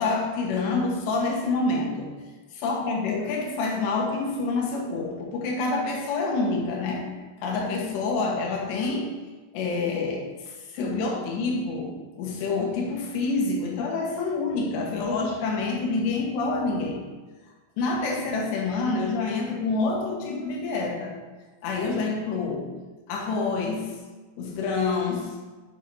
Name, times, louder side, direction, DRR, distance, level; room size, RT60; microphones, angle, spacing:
voice 1, 0.0-2.1 2.6-7.1 7.4-9.2 9.5-17.0 17.8-21.2 21.6-22.7 23.1-24.0 24.4-25.4, left 3 dB, 75° left, 0 dB, 3.4 m, -27 dB
8.2 x 5.8 x 5.5 m, 1.3 s
omnidirectional pair, 5.0 m